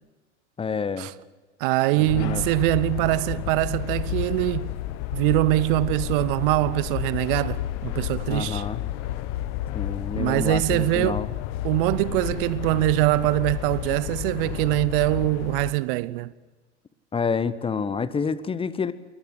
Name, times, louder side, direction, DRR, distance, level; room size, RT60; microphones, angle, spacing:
voice 1, 0.6-1.1 2.0-2.4 8.3-8.8 9.7-11.3 17.1-18.9, left 5 dB, 15° left, 0.9 m, -28 dB
voice 2, 1.6-4.7 5.1-8.6 10.2-11.2 11.6-16.3, right 19 dB, 50° right, 0.7 m, -23 dB
sound 1, 2.1-15.7, left 14 dB, 45° left, 1.3 m, -31 dB
22.0 x 19.0 x 7.9 m
figure-of-eight pair, 90°, 36 cm